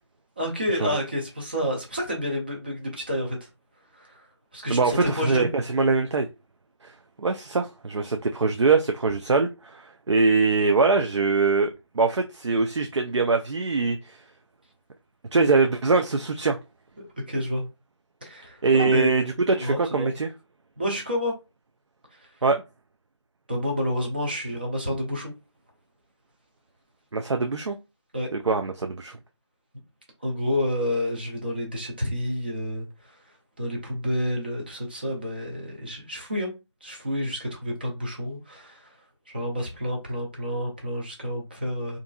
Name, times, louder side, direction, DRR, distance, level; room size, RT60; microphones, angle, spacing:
voice 1, 0.4-3.4 3.9-4.2 4.5-5.5 17.0-17.7 18.2-19.1 19.6-20.1 20.8-21.4 23.5-25.3 28.1-28.3 30.2-32.9 33.6-36.5 36.8-38.9 39.3-42.0, equal, 20° right, 0.5 m, -29 dB
voice 2, 4.7-6.3 6.8-6.9 7.2-14.2 15.3-16.6 18.6-20.3 22.4-22.6 27.1-27.8 28.3-29.1, right 4 dB, 75° right, 0.4 m, -23 dB
2.8 x 2.5 x 2.3 m
figure-of-eight pair, 165°, 15 cm